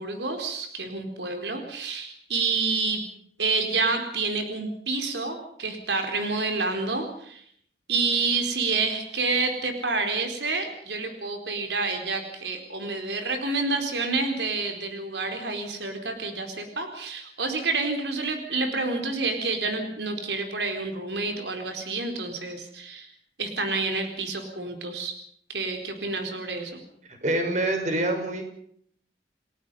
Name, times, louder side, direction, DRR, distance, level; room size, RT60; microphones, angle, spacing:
voice 1, 0.0-3.0 3.4-7.4 7.9-23.1 23.4-25.2 25.5-26.8, right 3 dB, 80° right, 5 dB, 4.1 m, -28 dB
voice 2, 27.1-28.4, right 1 dB, 40° right, 5 dB, 5.7 m, -26 dB
29.5 x 19.5 x 5.6 m, 0.64 s
head